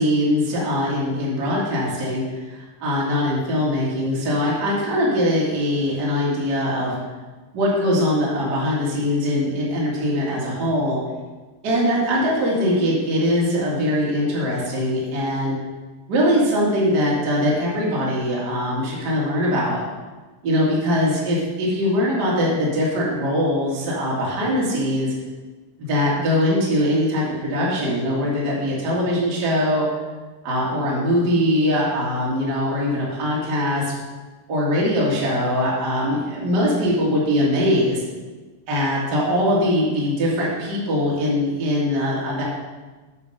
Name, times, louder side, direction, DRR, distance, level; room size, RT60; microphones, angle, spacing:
voice 1, 0.0-7.0 7.5-11.0 11.6-15.5 16.1-19.8 20.4-25.1 25.8-29.9 30.4-33.9 34.5-38.0 38.7-42.4, equal, 35° right, -5 dB, 1.9 m, -21 dB
9.3 x 4.0 x 6.5 m, 1.3 s
omnidirectional pair, 3.9 m